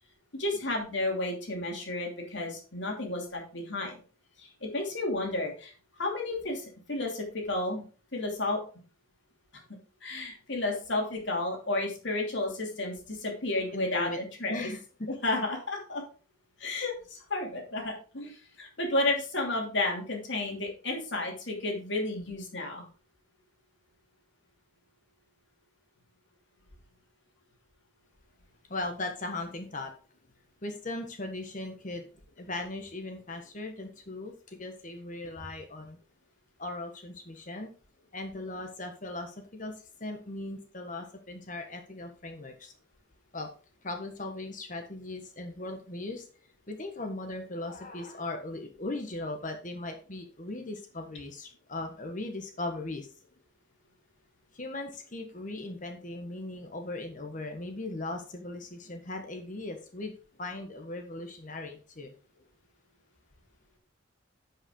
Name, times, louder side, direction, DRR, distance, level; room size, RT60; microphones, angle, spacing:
voice 1, 0.3-4.0 4.4-5.7 6.0-7.8 8.1-8.6 10.0-14.7 15.2-16.0 16.6-22.8, left 2 dB, 60° left, 1 dB, 2.8 m, -32 dB
voice 2, 13.5-14.2 14.5-15.1 28.7-29.9 30.6-32.1 32.4-36.0 36.6-37.7 38.1-42.7 43.3-43.5 43.8-46.3 46.7-53.1 54.5-60.1 60.4-62.1, left 2 dB, 40° left, 4 dB, 1.3 m, -38 dB
10.5 x 5.7 x 3.9 m, 0.38 s
head